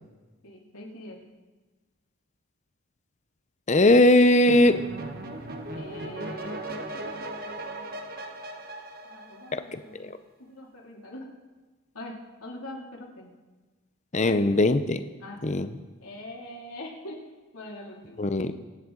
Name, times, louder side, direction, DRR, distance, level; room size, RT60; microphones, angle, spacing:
voice 1, 0.4-1.2 5.7-6.6 9.0-10.1 10.4-11.3 11.9-13.3 14.2-14.4 15.2-15.5 16.0-17.2 17.5-18.3, left 1 dB, 75° left, -3 dB, 2.8 m, -42 dB
voice 2, 3.7-4.8 9.5-10.2 14.1-15.0 15.4-15.7 18.2-18.5, left 1 dB, 30° left, 11 dB, 0.7 m, -20 dB
sound 1, 4.5-9.9, right 1 dB, 40° right, 1.2 m, -37 dB
24.5 x 10.0 x 3.9 m, 1.3 s
head